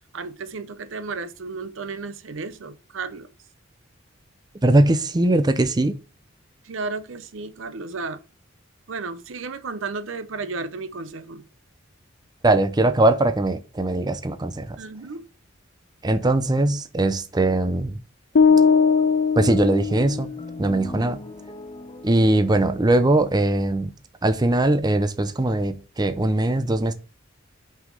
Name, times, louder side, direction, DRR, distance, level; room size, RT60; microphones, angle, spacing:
voice 1, 0.1-3.3 6.6-8.2 8.9-11.4 14.8-15.2, right 4 dB, 70° right, 0.7 m, -33 dB
voice 2, 4.6-6.0 12.4-14.8 16.0-17.9 19.4-20.3 20.6-21.2 22.0-23.9 24.2-26.9, right 2 dB, 20° right, 0.5 m, -20 dB
sound 1, 18.3-23.5, left 1 dB, 25° left, 0.7 m, -41 dB
sound 2, 18.4-20.5, left 5 dB, 60° left, 0.5 m, -19 dB
5.9 x 5.7 x 3.8 m
head